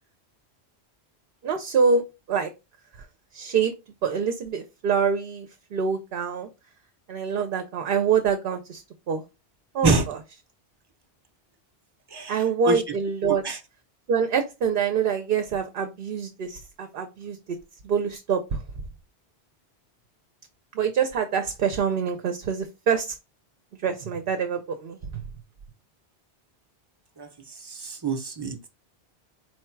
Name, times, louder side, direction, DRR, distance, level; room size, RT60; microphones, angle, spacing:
voice 1, 1.4-2.5 3.0-3.1 3.3-3.7 4.0-6.5 7.1-9.2 9.7-10.2 12.3-13.4 14.1-17.6 17.8-18.6 20.7-23.2 23.8-25.2, right 6 dB, 65° right, 0.8 m, -25 dB
voice 2, 27.6-28.6, right 3 dB, 25° right, 0.6 m, -25 dB
4.5 x 2.3 x 4.4 m
omnidirectional pair, 1.1 m